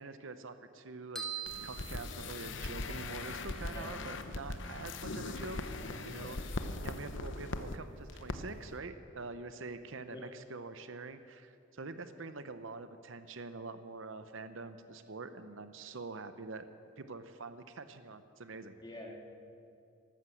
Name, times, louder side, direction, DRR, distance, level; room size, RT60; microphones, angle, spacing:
voice 1, 0.0-5.6 6.0-6.5 6.8-16.7 17.0-18.8, right 3 dB, 70° right, 11 dB, 0.7 m, -45 dB
sound 1, 1.1-2.9, right 7 dB, 5° left, 1.3 m, -43 dB
sound 2, 1.5-7.8 8.1-8.4 8.6-8.7, left 2 dB, 60° left, 0.9 m, -40 dB
voice 2, 5.8-6.3 6.7-6.8 10.1-10.3 18.8-19.2, left 1 dB, 20° left, -2 dB, 2.6 m, -47 dB
13.5 x 12.0 x 7.9 m, 2.5 s
head